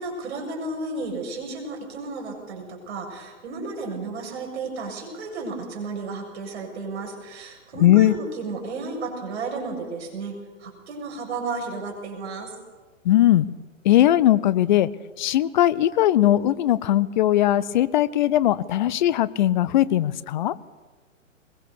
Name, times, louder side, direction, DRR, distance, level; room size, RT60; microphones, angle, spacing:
voice 1, 0.0-10.3 10.6-12.6, right 3 dB, 55° right, 2 dB, 7.3 m, -33 dB
voice 2, 7.8-8.2 13.0-13.5 13.8-14.9 15.2-20.5, left 13 dB, 35° left, 18 dB, 0.8 m, -19 dB
22.0 x 22.0 x 6.9 m, 1.3 s
figure-of-eight pair, 130°, 40 cm